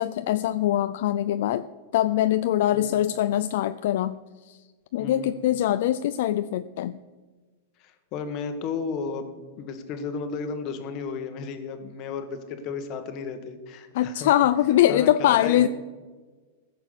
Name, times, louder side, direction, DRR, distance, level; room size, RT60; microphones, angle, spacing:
voice 1, 0.0-1.7 1.9-4.2 4.4-4.6 4.9-7.0 13.9-15.7, left 12 dB, 60° left, 12 dB, 0.4 m, -23 dB
voice 2, 5.0-5.5 7.8-14.3 14.9-15.7, left 5 dB, 30° left, 8 dB, 1.3 m, -34 dB
15.0 x 6.9 x 6.5 m, 1.3 s
supercardioid pair, 165°, 0 cm